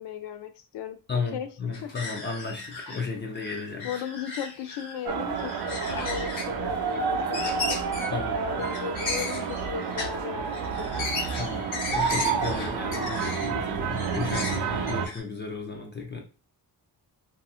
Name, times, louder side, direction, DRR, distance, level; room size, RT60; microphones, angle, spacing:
voice 1, 0.0-1.5 1.8-1.9 3.8-7.8 8.3-10.9, left 8 dB, 80° left, 10 dB, 0.5 m, -36 dB
voice 2, 1.1-4.0 8.1-8.4 11.3-16.2, left 4 dB, 30° left, 1 dB, 0.4 m, -34 dB
sound 1, 1.7-3.1 3.3-5.0 5.4-6.6 6.8-7.0 7.3-8.1 8.6-10.2 10.5-13.5 13.9-15.2, left 3 dB, 50° left, 1.0 m, -35 dB
sound 2, 5.1-15.1, right 6 dB, 65° right, 0.5 m, -30 dB
2.8 x 2.3 x 2.4 m, 0.34 s
wide cardioid pair, 155°, 40 cm